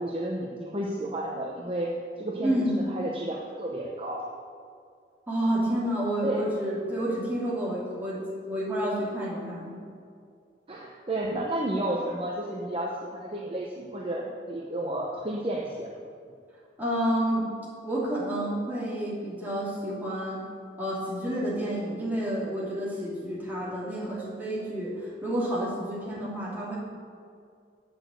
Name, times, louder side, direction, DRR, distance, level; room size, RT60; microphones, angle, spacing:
voice 1, 0.0-4.2 6.2-6.5 10.7-15.9 26.2-26.4, right 1 dB, 30° right, -2 dB, 0.8 m, -32 dB
voice 2, 2.4-2.9 5.3-9.8 16.8-17.5 17.8-20.4 20.8-26.8, right 1 dB, 10° right, -7 dB, 2.6 m, -29 dB
8.8 x 6.4 x 7.9 m, 2.3 s
head